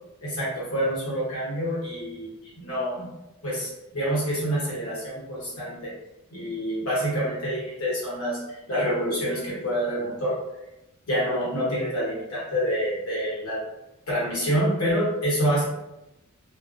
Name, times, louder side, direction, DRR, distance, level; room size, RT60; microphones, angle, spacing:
voice 1, 0.2-2.3 2.6-3.1 3.4-5.9 6.3-8.4 8.7-10.4 11.1-13.6 14.1-15.6, equal, 80° left, -6 dB, 1.1 m, -27 dB
2.3 x 2.1 x 2.4 m, 0.94 s
head